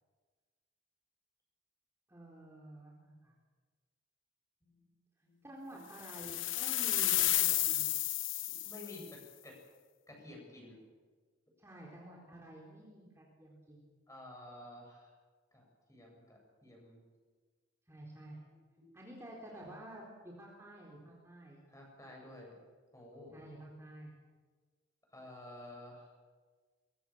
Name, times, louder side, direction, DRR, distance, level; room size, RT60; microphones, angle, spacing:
voice 1, 2.1-3.3 5.4-8.0 11.6-13.9 17.9-18.4 18.9-21.6 23.3-24.1, right 1 dB, 15° right, -3 dB, 4.0 m, -51 dB
voice 2, 4.6-4.9 5.2-5.8 8.6-9.6 10.1-10.8 14.1-15.1 15.5-15.6 15.9-17.0 18.8-18.9 21.7-22.5 22.9-23.4 25.1-26.1, left 1 dB, 15° left, 0 dB, 7.7 m, -52 dB
sound 1, 6.0-9.1, left 15 dB, 75° left, 1.2 m, -32 dB
23.5 x 22.0 x 7.4 m, 1.4 s
head